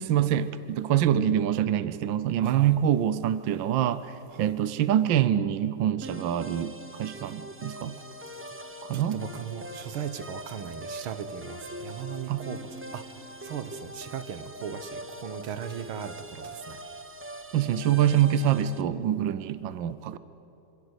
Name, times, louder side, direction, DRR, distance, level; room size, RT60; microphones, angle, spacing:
voice 1, 0.0-7.9 8.9-9.2 12.3-12.4 17.5-20.2, right 10 dB, 70° right, 14 dB, 1.5 m, -25 dB
voice 2, 2.4-2.8 4.3-4.6 8.9-13.0 13.4-16.8, right 8 dB, 85° right, 11 dB, 2.0 m, -38 dB
sound 1, 6.0-18.8, equal, 10° right, 0.6 m, -42 dB
27.0 x 27.0 x 8.1 m, 2.9 s
omnidirectional pair, 2.3 m